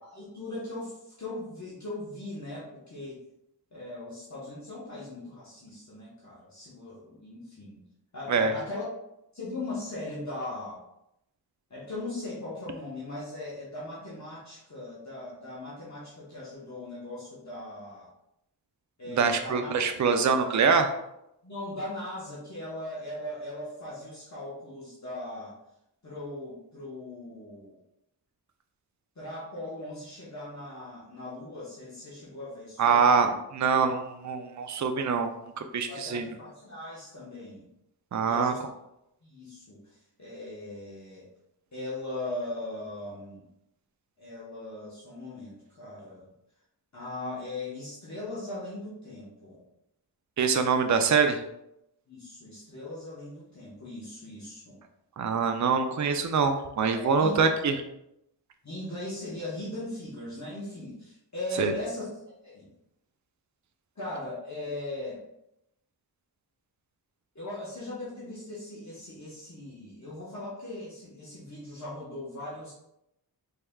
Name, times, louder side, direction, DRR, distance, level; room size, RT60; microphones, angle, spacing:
voice 1, 0.0-3.2 3.7-7.8 8.1-8.8 9.3-10.8 11.7-18.1 19.0-19.7 21.4-25.5 26.0-27.8 29.2-33.2 35.9-37.6 38.2-38.7 39.2-41.3 41.7-43.4 44.2-46.3 46.9-49.6 52.1-54.8 57.0-57.4 58.6-62.1 62.4-62.7 64.0-65.2 67.3-72.7, left 2 dB, 40° left, -7 dB, 1.1 m, -39 dB
voice 2, 19.1-20.9 32.8-35.3 35.6-36.2 38.1-38.5 50.4-51.4 55.2-57.7 61.6-61.7, right 5 dB, 45° right, 7 dB, 0.5 m, -24 dB
4.5 x 3.3 x 2.3 m, 0.83 s
cardioid pair, 50°, 42 cm